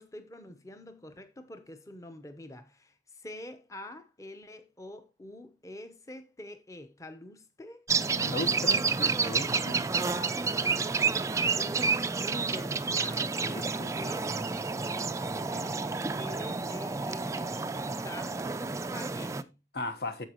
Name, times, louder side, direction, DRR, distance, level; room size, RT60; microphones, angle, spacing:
voice 1, 0.0-8.8 9.9-14.4 15.3-15.9 16.2-17.8 18.0-19.6, left 1 dB, 20° left, 0.8 m, -46 dB
sound 1, 7.9-19.4, right 4 dB, 20° right, 0.3 m, -30 dB
voice 2, 8.2-9.8 13.5-13.9 19.7-20.2, left 2 dB, 65° left, 1.2 m, -37 dB
14.5 x 4.9 x 2.9 m
head